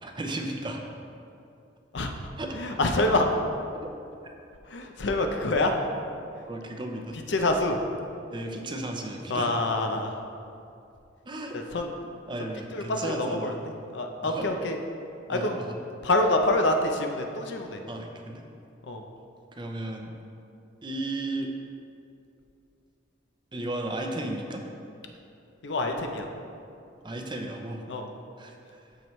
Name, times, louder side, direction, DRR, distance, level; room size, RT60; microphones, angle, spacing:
voice 1, 0.0-0.8 2.4-2.6 4.2-4.3 6.5-7.2 8.3-9.5 11.3-11.6 12.3-13.6 14.2-14.5 15.3-15.7 17.9-18.4 19.5-20.1 20.8-21.5 23.5-24.6 27.0-27.8 28.4-28.8, right 1 dB, 25° right, 2 dB, 0.6 m, -34 dB
voice 2, 2.5-3.3 4.7-5.7 7.1-7.8 9.3-10.2 11.5-11.9 12.4-13.5 13.9-14.8 15.3-15.6 16.0-17.8 18.9-19.0 25.6-26.3 27.9-28.1, left 2 dB, 70° left, 4 dB, 0.6 m, -26 dB
12.5 x 4.6 x 3.2 m, 2.6 s
head